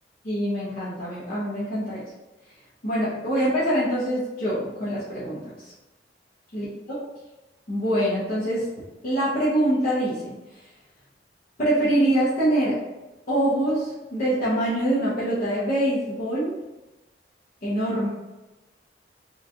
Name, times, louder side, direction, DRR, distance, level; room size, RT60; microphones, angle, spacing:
voice 1, 0.2-2.0 2.8-5.7 6.5-7.0 7.7-8.7 9.0-10.7 11.6-12.8 13.3-16.6 17.6-18.1, right 1 dB, 50° left, -10 dB, 0.7 m, -24 dB
3.0 x 2.5 x 2.3 m, 1.1 s
head